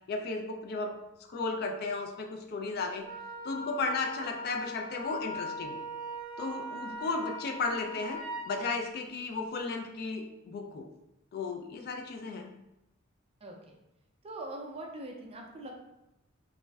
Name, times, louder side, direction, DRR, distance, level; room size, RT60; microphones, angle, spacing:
voice 1, 0.1-1.0 1.3-3.1 3.4-5.8 6.4-8.2 8.4-10.9 11.3-12.5, left 3 dB, 50° left, 3 dB, 0.3 m, -34 dB
Wind instrument woodwind instrument, 3.0-8.5, equal, 85° left, 1.0 m, -40 dB
voice 2, 13.4-13.8 14.2-15.7, right 1 dB, 30° right, 0 dB, 0.4 m, -42 dB
2.4 x 2.1 x 3.2 m, 0.89 s
head